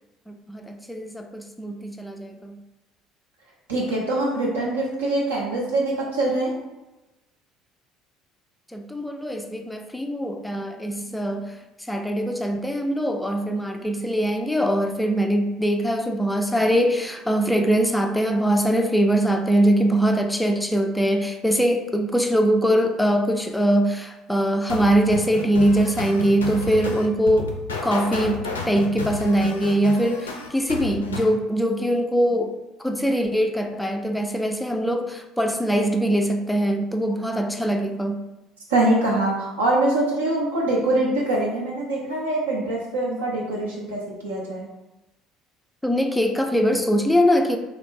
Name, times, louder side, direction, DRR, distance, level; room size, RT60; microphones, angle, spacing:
voice 1, 0.3-2.6 8.7-11.5 11.9-27.5 27.8-32.5 32.8-38.2 45.8-47.6, equal, 5° left, 4 dB, 0.3 m, -22 dB
voice 2, 3.7-6.5 38.7-44.7, right 2 dB, 75° right, -4 dB, 0.8 m, -23 dB
sound 1, 24.7-31.3, left 4 dB, 75° left, 0.4 m, -32 dB
2.8 x 2.5 x 3.7 m, 1.0 s
figure-of-eight pair, 55°, 0 cm